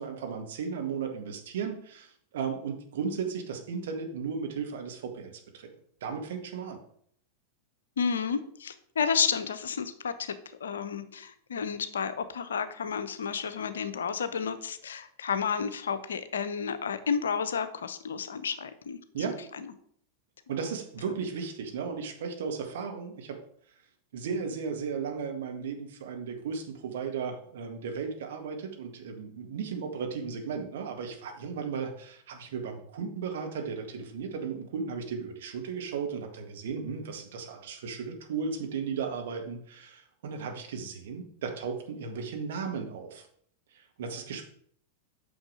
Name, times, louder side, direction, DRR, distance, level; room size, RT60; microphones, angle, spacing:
voice 1, 0.0-5.7 6.0-6.8 19.1-19.4 20.5-23.4 24.1-43.3 43.7-44.5, right 6 dB, 60° right, 3 dB, 1.8 m, -35 dB
voice 2, 8.0-10.3 10.6-19.0 19.5-19.6, left 6 dB, 65° left, 11 dB, 0.8 m, -31 dB
9.0 x 6.3 x 4.9 m, 0.63 s
figure-of-eight pair, 90°, 0 cm